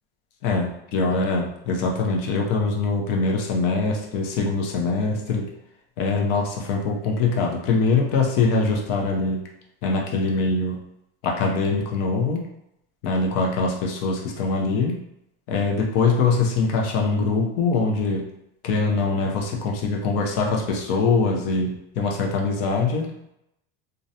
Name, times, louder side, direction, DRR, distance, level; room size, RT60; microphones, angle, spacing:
voice 1, 0.4-5.4 6.0-9.4 9.8-10.8 11.2-12.4 13.0-15.0 15.5-18.2 18.6-23.1, left 4 dB, 45° left, 1 dB, 0.5 m, -23 dB
2.4 x 2.0 x 2.7 m, 0.82 s
supercardioid pair, 160°, 33 cm